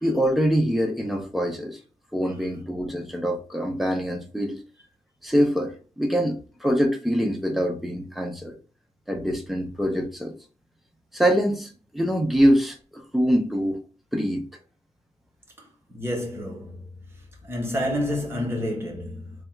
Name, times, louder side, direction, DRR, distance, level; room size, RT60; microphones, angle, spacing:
voice 1, 0.0-1.8 2.1-4.6 5.2-8.5 9.1-10.3 11.1-13.8 14.1-14.5, equal, ahead, 0.6 m, -24 dB
voice 2, 15.6-19.3, left 1 dB, 20° right, 1.0 m, -30 dB
3.4 x 2.4 x 4.2 m
wide cardioid pair, 150°, 11 cm